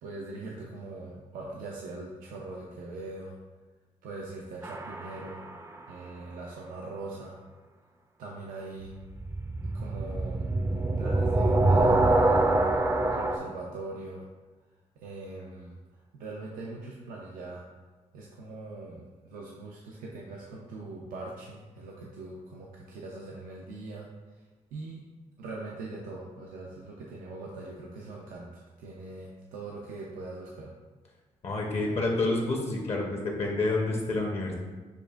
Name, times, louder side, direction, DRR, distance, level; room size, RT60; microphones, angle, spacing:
voice 1, 0.0-3.4 4.0-5.5 5.9-7.4 8.2-8.9 9.6-10.5 11.0-12.7 13.0-14.3 15.0-17.6 18.1-24.4 24.7-25.0 25.4-30.7, right 2 dB, 90° right, -3 dB, 0.5 m, -41 dB
sound 1, 4.6-5.5 9.1-13.4, right 2 dB, 20° right, 0.4 m, -25 dB
voice 2, 31.4-34.5, left 2 dB, 50° left, 0 dB, 0.8 m, -28 dB
6.6 x 2.5 x 2.3 m, 1.3 s
cardioid pair, 70°, 14 cm